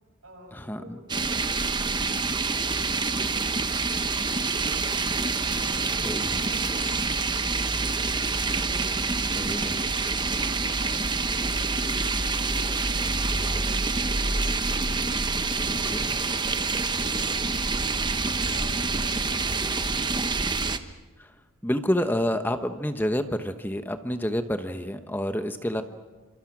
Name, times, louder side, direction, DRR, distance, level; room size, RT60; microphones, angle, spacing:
voice 1, 0.2-8.7 9.0-11.1 11.4-15.0 15.3-20.7 25.7-25.8, right 1 dB, 75° right, 2 dB, 8.0 m, -50 dB
sound 1, 1.1-20.8, right 4 dB, 20° right, 1.1 m, -27 dB
voice 2, 6.0-6.4 9.4-9.7 15.7-16.0 21.2-21.3 21.6-25.8, equal, 10° left, 8 dB, 1.0 m, -28 dB
29.0 x 26.5 x 6.1 m, 1.4 s
head